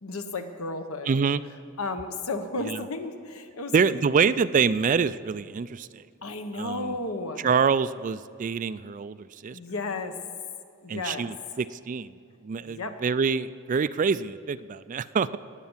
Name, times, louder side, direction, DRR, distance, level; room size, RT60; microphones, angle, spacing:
voice 1, 0.0-1.1 1.8-4.3 6.2-7.5 9.5-10.2 10.8-11.3 12.6-13.0, left 3 dB, 75° left, 7 dB, 1.2 m, -33 dB
voice 2, 1.1-1.4 2.6-2.8 3.7-6.0 6.5-7.0 7.4-9.6 10.9-12.1 12.4-15.3, right 5 dB, 35° right, 15 dB, 0.3 m, -26 dB
19.5 x 8.3 x 7.3 m, 2.3 s
head